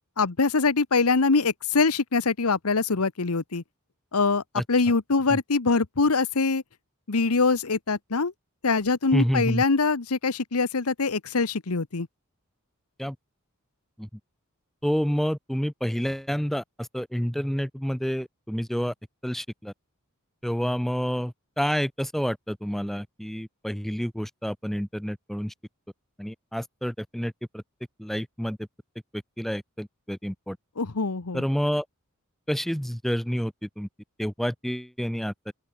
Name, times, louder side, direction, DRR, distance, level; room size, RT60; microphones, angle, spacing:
voice 1, 0.2-3.6 4.1-4.4 4.7-6.6 7.1-8.3 8.6-12.1 30.8-31.4, left 4 dB, 90° left, 1.1 m, -23 dB
voice 2, 9.1-9.6 13.0-13.2 14.0-14.1 14.8-18.9 19.2-19.7 20.4-25.5 26.2-27.6 28.0-28.6 29.1-30.6 31.3-31.9 32.5-33.9 34.2-35.5, equal, ahead, 0.5 m, -29 dB
open air
head